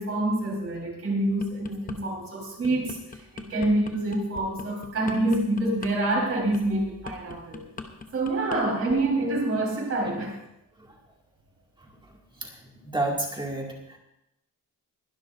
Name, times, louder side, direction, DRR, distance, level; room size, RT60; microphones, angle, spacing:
voice 1, 0.0-7.7 8.1-10.4, right 2 dB, 40° right, -1 dB, 4.2 m, -27 dB
sound 1, 1.2-2.0 2.4-8.6 8.9-9.2, left 4 dB, 25° left, 0.9 m, -40 dB
voice 2, 12.8-14.0, right 2 dB, 15° right, -1 dB, 2.3 m, -30 dB
21.0 x 12.0 x 2.6 m, 0.85 s
wide cardioid pair, 175°, 35 cm